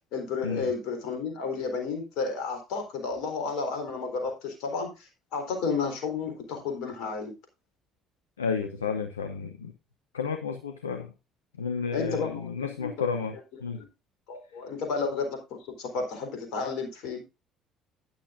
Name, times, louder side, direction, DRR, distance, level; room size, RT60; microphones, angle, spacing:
voice 1, 0.1-7.3 11.9-13.0 13.8-13.9 14.3-15.3 15.8-17.2, left 4 dB, 60° left, 4.1 m, -32 dB
voice 2, 8.4-9.7 10.1-11.1 11.6-13.4 13.6-13.8, left 5 dB, 80° left, 0.8 m, -31 dB
12.5 x 10.5 x 2.6 m
figure-of-eight pair, 55°, 0 cm